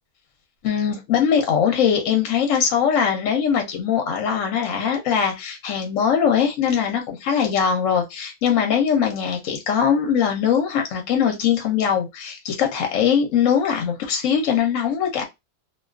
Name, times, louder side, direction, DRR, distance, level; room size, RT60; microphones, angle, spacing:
voice 1, 0.6-15.3, left 7 dB, 65° left, 0.9 m, -21 dB
2.4 x 2.3 x 2.3 m
omnidirectional pair, 1.6 m